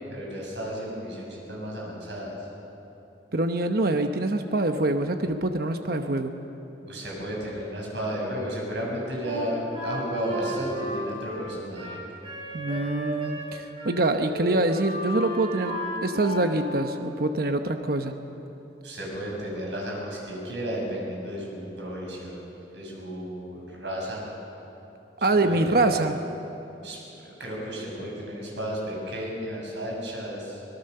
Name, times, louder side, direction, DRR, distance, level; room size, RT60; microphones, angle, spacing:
voice 1, 0.1-2.3 6.9-12.0 18.8-22.4 22.7-24.2 25.4-26.0 26.8-27.0 27.2-30.6, equal, 85° right, -2 dB, 7.0 m, -33 dB
voice 2, 3.3-6.3 12.5-18.2 25.2-26.2, right 2 dB, 60° right, 6 dB, 1.0 m, -25 dB
Wind instrument woodwind instrument, 9.2-13.5 13.8-14.0 14.2-16.5, equal, 30° right, 6.9 m, -34 dB
25.5 x 18.5 x 6.8 m, 3.0 s
head